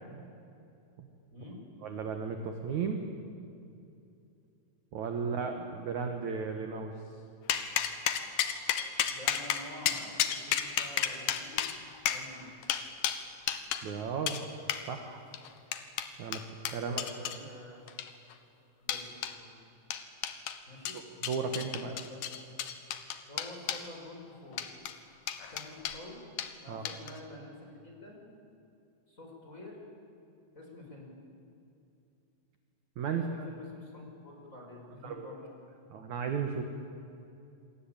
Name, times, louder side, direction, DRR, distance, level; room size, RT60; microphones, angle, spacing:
voice 1, 1.8-3.0 4.9-6.9 13.8-14.4 14.9-15.2 16.2-16.4 16.7-17.0 21.2-22.0 26.7-26.9 33.0-33.5 35.0-35.3 35.9-36.6, right 6 dB, 60° right, 5 dB, 2.1 m, -34 dB
voice 2, 5.2-5.6 9.1-11.6 12.1-12.5 16.8-17.8 18.8-19.6 20.7-21.0 21.8-22.2 23.3-24.7 25.4-26.2 26.6-28.2 29.1-29.8 30.5-31.1 33.1-35.4, left 1 dB, 15° left, 0 dB, 5.3 m, -48 dB
sound 1, 7.5-13.8 14.3-14.4 14.7-14.8 15.3-17.4 17.9-18.3 18.9-19.3 19.9-20.6 20.9-23.9 24.5-24.9 25.3-26.0 26.4-26.5 26.9-27.2, left 10 dB, 65° left, 2.4 m, -32 dB
27.5 x 23.5 x 8.9 m, 2.6 s
omnidirectional pair, 5.3 m